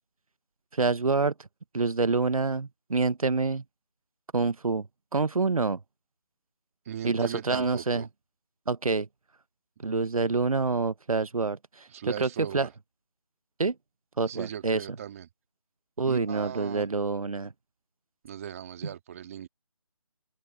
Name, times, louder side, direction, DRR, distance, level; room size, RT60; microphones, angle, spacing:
voice 1, 0.7-1.3 1.7-3.6 4.3-4.9 5.1-5.8 7.0-8.0 8.7-9.1 9.8-11.9 12.2-12.3 12.5-12.7 13.6-13.7 14.2-14.8 16.0-17.5, right 4 dB, 90° right, 1.0 m, -26 dB
voice 2, 6.9-8.1 11.9-12.7 14.2-15.3 16.1-16.9 18.2-19.5, right 9 dB, 25° right, 2.3 m, -38 dB
open air
figure-of-eight pair, 165°, 18 cm